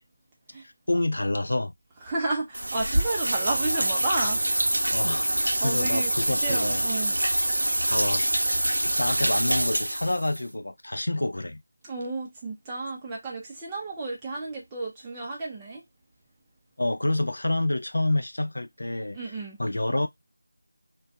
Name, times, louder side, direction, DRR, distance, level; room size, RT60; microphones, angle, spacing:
voice 1, 0.9-1.7 4.9-6.8 7.8-11.6 16.8-19.2 19.6-20.1, left 1 dB, 75° left, 0.3 m, -28 dB
voice 2, 2.0-4.4 5.6-6.1 6.4-7.2 11.8-15.8 19.1-19.6, right 2 dB, 10° right, 0.5 m, -32 dB
sound 1, 2.5-10.4, right 1 dB, 85° right, 0.6 m, -25 dB
2.2 x 2.2 x 2.6 m
figure-of-eight pair, 175°, 0 cm